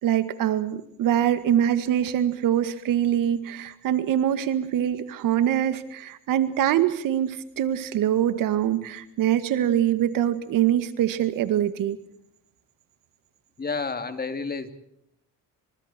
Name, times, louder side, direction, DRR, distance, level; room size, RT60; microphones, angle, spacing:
voice 1, 0.0-12.0, right 10 dB, 80° right, 12 dB, 2.1 m, -24 dB
voice 2, 13.6-14.7, left 4 dB, 30° left, 9 dB, 3.0 m, -30 dB
29.5 x 26.0 x 4.5 m, 0.74 s
cardioid pair, 100°, 32 cm